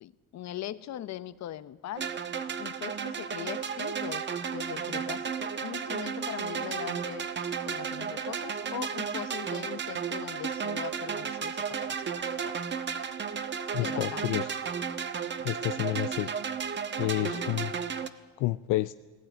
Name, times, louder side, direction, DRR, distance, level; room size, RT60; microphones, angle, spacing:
voice 1, 0.0-2.1 2.6-4.2 4.5-7.3 7.6-12.1 12.4-12.6 13.8-14.5 17.0-17.6, left 12 dB, 60° left, 14 dB, 1.1 m, -40 dB
sound 1, 2.0-18.1, right 7 dB, 35° right, 1.3 m, -33 dB
voice 2, 13.7-14.5 15.4-16.3 17.0-17.7 18.4-18.9, left 17 dB, 80° left, 13 dB, 0.6 m, -29 dB
19.0 x 17.5 x 9.4 m, 1.3 s
cardioid pair, 105°, 31 cm